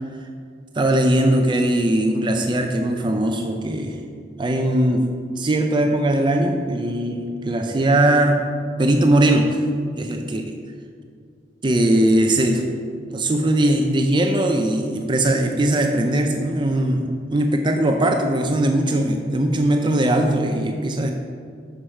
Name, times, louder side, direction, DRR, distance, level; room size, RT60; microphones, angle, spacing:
voice 1, 0.7-4.0 4.4-5.0 5.4-8.4 8.8-9.6 10.0-10.4 11.6-12.6 13.1-21.1, right 1 dB, 25° right, 4 dB, 0.5 m, -20 dB
8.7 x 6.4 x 4.4 m, 2.2 s
head